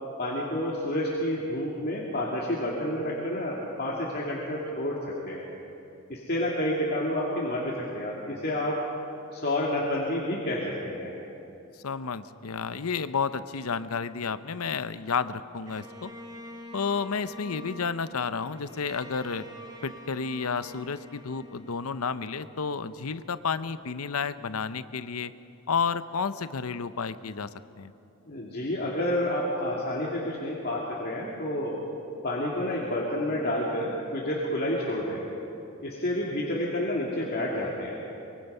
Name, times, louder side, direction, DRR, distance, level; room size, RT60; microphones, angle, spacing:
voice 1, 0.2-5.4 6.1-8.8 9.3-11.1 28.2-31.8 32.2-35.2 35.8-38.0, left 1 dB, 45° left, -4 dB, 2.4 m, -29 dB
voice 2, 11.8-16.1 16.7-19.5 19.8-25.3 25.7-27.5 27.8-27.9, left 5 dB, 85° left, 13 dB, 0.7 m, -31 dB
Bowed string instrument, 15.7-22.9, equal, 20° right, 2.1 m, -46 dB
24.5 x 23.0 x 5.6 m, 2.9 s
head